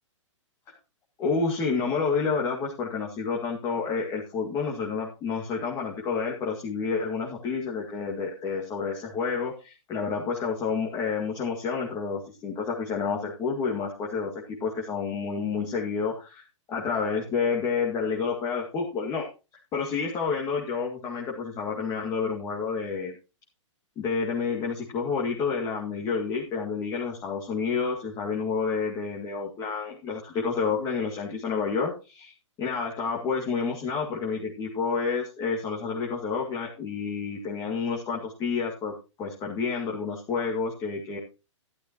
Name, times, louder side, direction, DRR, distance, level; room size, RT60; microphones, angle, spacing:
voice 1, 1.2-16.4 16.7-19.3 19.7-23.2 24.0-32.3 32.6-41.2, left 5 dB, 20° left, -2 dB, 2.1 m, -29 dB
12.0 x 12.0 x 3.0 m, 0.30 s
hypercardioid pair, 140°, 16 cm